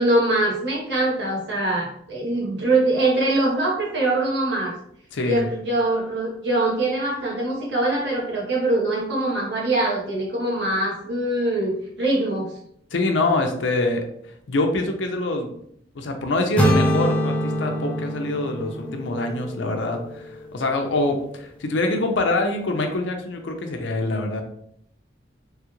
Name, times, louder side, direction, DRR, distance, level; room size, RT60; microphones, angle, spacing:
voice 1, 0.0-4.7 5.2-12.5, right 2 dB, 65° right, -3 dB, 1.1 m, -23 dB
voice 2, 5.1-5.4 12.9-14.1 14.5-15.5 15.9-24.4, left 2 dB, 80° left, 4 dB, 0.5 m, -25 dB
sound 1, 16.6-20.6, equal, 5° left, 0.4 m, -24 dB
3.2 x 2.4 x 3.0 m, 0.69 s
head